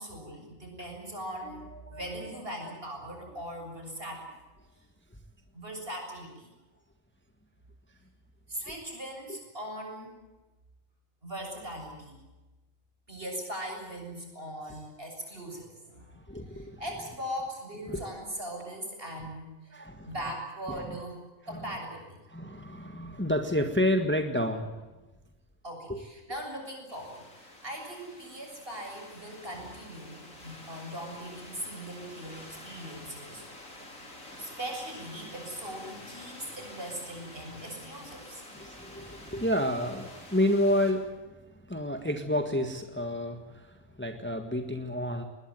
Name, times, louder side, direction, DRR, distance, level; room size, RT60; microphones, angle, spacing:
voice 1, 0.0-4.3 5.5-6.5 8.5-10.1 11.2-12.2 13.1-16.1 16.5-19.7 20.0-21.2 21.5-22.2 25.6-33.4 34.4-38.4, equal, 45° right, 2 dB, 7.5 m, -40 dB
voice 2, 1.4-2.3 9.3-9.4 16.3-16.8 17.9-18.0 19.7-20.1 20.7-21.0 21.5-21.6 22.3-24.8 25.9-26.0 38.5-45.2, left 1 dB, 10° left, 6 dB, 1.7 m, -30 dB
sound 1, 26.9-40.9, left 1 dB, 85° left, 5.4 m, -48 dB
21.5 x 20.5 x 9.3 m, 1.1 s
omnidirectional pair, 1.3 m